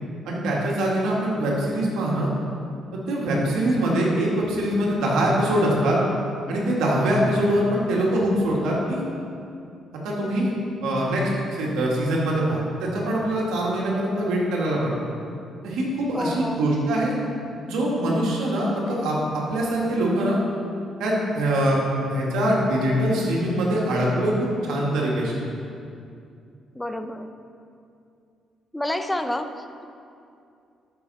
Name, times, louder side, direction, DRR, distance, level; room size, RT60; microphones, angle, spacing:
voice 1, 0.3-2.3 3.1-6.0 6.5-9.0 10.0-10.5 10.8-14.9 15.6-17.2 17.6-20.4 21.0-21.8 22.1-25.4, right 1 dB, 90° right, -4 dB, 2.2 m, -23 dB
voice 2, 16.1-16.7 26.7-27.3 28.7-29.9, left 1 dB, 10° left, 7 dB, 0.6 m, -29 dB
14.0 x 6.1 x 4.2 m, 2.5 s
cardioid pair, 90°, 0 cm